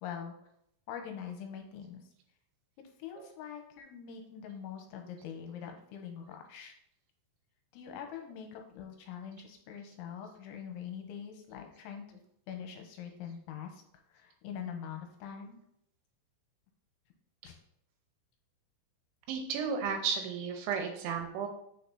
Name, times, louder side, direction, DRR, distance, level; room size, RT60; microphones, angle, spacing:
voice 1, 0.0-0.3 0.9-2.1 3.0-6.7 7.7-12.2 12.5-13.8 14.1-15.6 17.4-17.6, left 8 dB, 85° left, 4 dB, 3.0 m, -43 dB
voice 2, 19.3-21.5, right 6 dB, 80° right, 3 dB, 3.1 m, -33 dB
8.1 x 6.6 x 2.7 m, 0.75 s
omnidirectional pair, 5.6 m